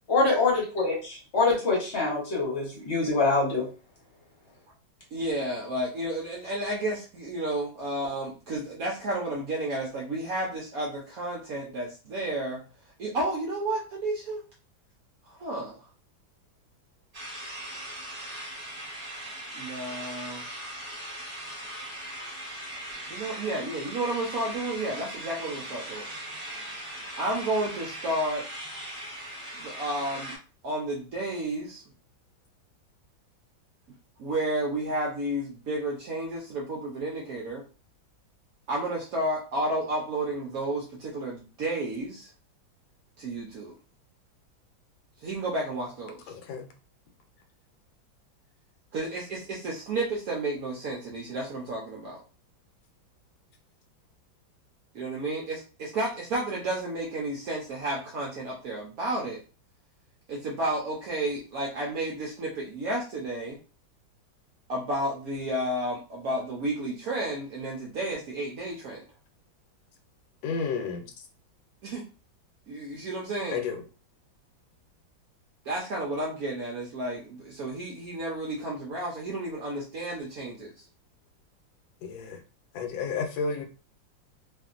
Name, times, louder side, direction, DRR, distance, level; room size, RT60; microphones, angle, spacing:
voice 1, 0.1-3.7, left 3 dB, 45° left, -3 dB, 0.9 m, -25 dB
voice 2, 5.1-14.4 15.3-15.9 19.5-20.5 23.1-26.1 27.2-28.5 29.5-30.4 30.6-31.8 34.2-37.6 38.7-42.3 43.2-43.7 45.2-46.3 48.9-52.2 54.9-59.4 60.3-63.6 64.7-69.0 71.8-72.0 72.7-73.7 75.6-80.8, right 1 dB, 70° right, -2 dB, 0.8 m, -32 dB
sound 1, 17.1-30.4, right 1 dB, 35° right, 1.1 m, -39 dB
voice 3, 46.3-46.7 70.4-71.1 73.5-73.8 82.0-82.4 82.7-83.6, left 5 dB, 80° left, 5 dB, 1.3 m, -31 dB
2.9 x 2.6 x 2.4 m, 0.34 s
omnidirectional pair, 2.1 m